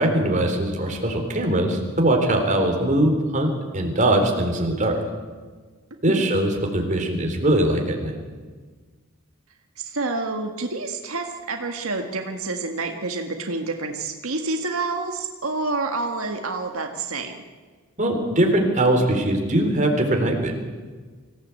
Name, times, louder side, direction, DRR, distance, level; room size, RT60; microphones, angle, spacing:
voice 1, 0.0-5.0 6.0-8.1 18.0-20.5, right 1 dB, 35° right, 2 dB, 3.9 m, -21 dB
voice 2, 6.0-6.4 9.8-17.4, right 3 dB, 85° right, 4 dB, 1.8 m, -28 dB
25.0 x 16.5 x 8.4 m, 1.5 s
head